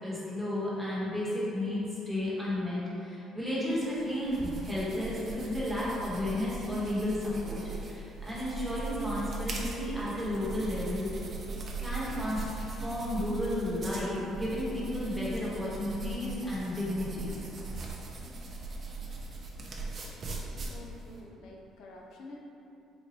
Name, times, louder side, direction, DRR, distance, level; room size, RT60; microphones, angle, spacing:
voice 1, 0.0-11.1 11.8-12.4 12.8-17.4, left 1 dB, ahead, -9 dB, 1.1 m, -33 dB
sound 1, 3.7-21.2, right 3 dB, 35° right, 0.5 m, -40 dB
voice 2, 20.4-22.4, left 2 dB, 70° left, -1 dB, 0.4 m, -49 dB
4.2 x 2.2 x 4.1 m, 2.8 s
cardioid pair, 125°, 0 cm